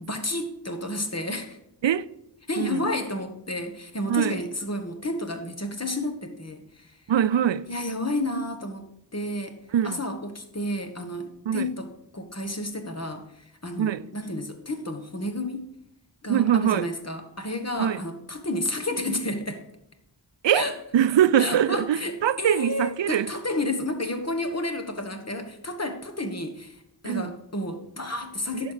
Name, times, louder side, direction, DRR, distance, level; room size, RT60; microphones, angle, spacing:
voice 1, 0.1-1.6 2.5-7.0 7.7-9.6 9.8-15.6 16.2-19.6 20.5-20.7 21.4-28.7, left 1 dB, 35° left, 1.6 m, -31 dB
voice 2, 7.1-7.7 9.7-10.0 11.5-11.7 13.8-14.0 16.3-16.9 17.8-18.0 20.4-20.7 20.9-23.3 27.0-27.3 28.6-28.7, right 10 dB, 75° right, 0.5 m, -23 dB
10.5 x 6.0 x 4.9 m
wide cardioid pair, 50°, 44 cm